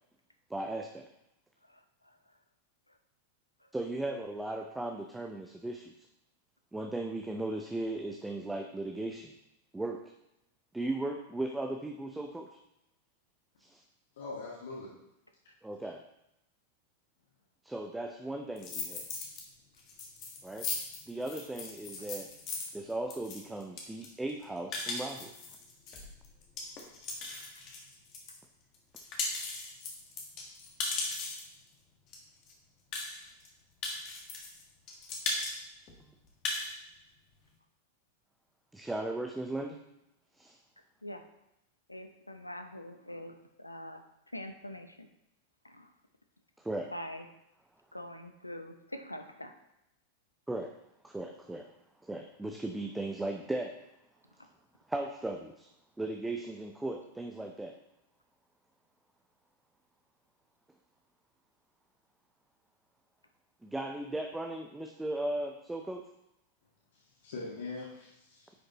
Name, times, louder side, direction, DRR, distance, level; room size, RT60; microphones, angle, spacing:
voice 1, 0.5-1.1 3.7-5.9 6.7-9.3 9.7-10.0 10.7-12.5 13.6-13.8 15.6-16.0 17.6-19.1 20.4-20.7 21.1-22.3 22.7-25.3 36.0-36.1 38.7-39.8 40.4-40.6 46.6-46.9 50.5-50.7 51.0-51.7 52.0-53.8 54.9-55.7 56.0-57.7 63.6-66.0, right 2 dB, 5° right, 3 dB, 0.6 m, -37 dB
voice 2, 14.2-14.9 66.9-68.5, left 3 dB, 60° left, -5 dB, 1.6 m, -42 dB
sound 1, 18.6-19.4 19.8-28.4 28.7-31.6 32.1-32.2 32.4-32.5 32.9-33.5 33.8-34.6 34.9-35.5 35.9-36.0 36.3-36.7, left 3 dB, 35° left, 1.6 m, -38 dB
voice 3, 41.9-44.0 44.3-45.1 45.6-45.9 46.9-47.2 47.9-49.5, left 1 dB, 85° left, 6 dB, 0.7 m, -43 dB
9.9 x 5.3 x 3.0 m, 0.85 s
figure-of-eight pair, 90°, 0 cm